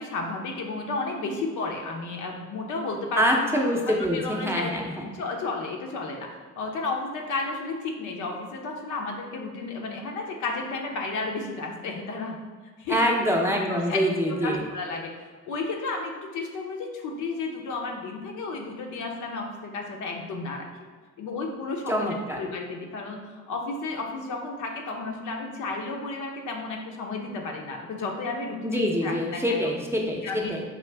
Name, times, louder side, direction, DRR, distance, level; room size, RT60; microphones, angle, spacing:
voice 1, 0.0-3.4 3.9-4.8 5.1-6.3 6.6-12.4 12.8-13.0 13.9-14.0 14.4-15.1 15.4-20.7 21.2-22.1 22.4-29.6 30.2-30.6, left 3 dB, 75° left, 1 dB, 0.8 m, -32 dB
voice 2, 3.2-5.1 12.9-14.6 21.9-22.4 28.6-30.6, equal, 10° right, -1 dB, 0.6 m, -25 dB
5.1 x 2.5 x 3.3 m, 1.5 s
cardioid pair, 90°, 30 cm